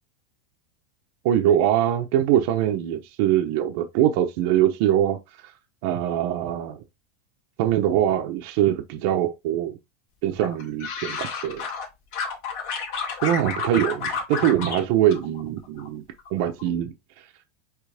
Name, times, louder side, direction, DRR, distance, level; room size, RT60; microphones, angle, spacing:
voice 1, 1.2-5.2 5.8-6.8 7.6-9.8 10.2-11.6 13.2-16.0 16.3-16.9, right 11 dB, 50° right, 0.9 m, -23 dB
sound 1, 10.4-11.9 12.1-14.8 15.1-15.9 16.2-16.6, left 5 dB, 55° left, 2.3 m, -30 dB
8.3 x 3.3 x 3.5 m
supercardioid pair, 170°, 0 cm